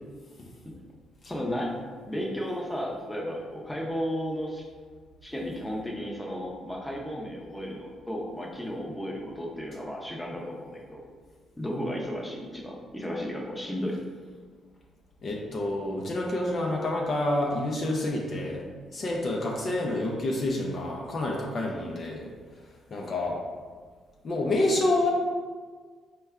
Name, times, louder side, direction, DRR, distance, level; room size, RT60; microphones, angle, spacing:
voice 1, 1.2-1.8 2.1-4.7 5.2-11.0 11.6-14.0, equal, 10° left, -2 dB, 0.7 m, -34 dB
voice 2, 15.2-22.3 22.9-23.4 24.2-25.1, left 1 dB, 45° left, -1 dB, 0.5 m, -28 dB
4.2 x 2.2 x 3.5 m, 1.5 s
cardioid pair, 90°, 0 cm